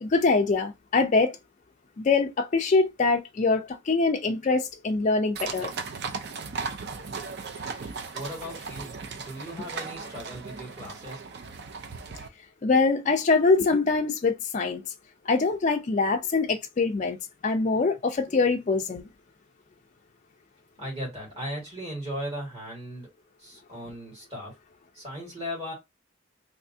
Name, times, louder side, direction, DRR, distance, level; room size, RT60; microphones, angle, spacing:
voice 1, 0.0-1.4 2.0-5.7 12.6-14.8 15.3-17.2 17.4-19.1, left 3 dB, 35° left, 0.3 m, -24 dB
sound 1, 5.4-12.3, right 4 dB, 50° right, 0.4 m, -37 dB
voice 2, 8.1-11.3 20.8-23.1 23.4-24.6 24.9-25.7, equal, 30° right, 2.1 m, -37 dB
3.3 x 2.7 x 2.6 m
head